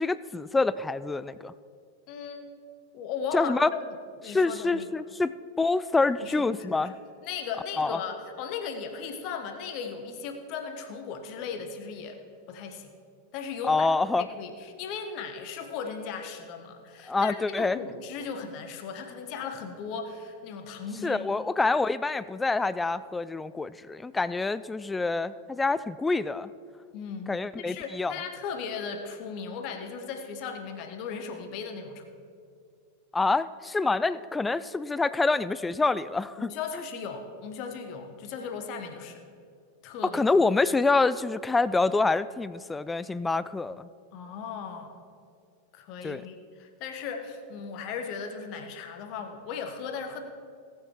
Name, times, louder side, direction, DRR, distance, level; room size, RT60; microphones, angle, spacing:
voice 1, 0.0-1.5 3.3-3.7 4.3-6.9 7.8-8.0 13.7-14.2 17.1-17.8 21.0-26.5 27.3-28.1 33.1-36.5 40.1-43.9 46.0-46.2, left 3 dB, 10° left, 17 dB, 0.3 m, -26 dB
voice 2, 2.1-2.5 2.9-3.9 4.2-4.8 6.2-6.9 7.2-12.2 12.5-12.9 13.3-13.9 14.2-21.3 26.9-32.0 36.4-39.2 39.8-40.2 44.1-45.0 45.7-50.2, left 6 dB, 40° left, 6 dB, 1.3 m, -37 dB
18.5 x 7.0 x 4.7 m, 2.3 s
figure-of-eight pair, 90°, 0 cm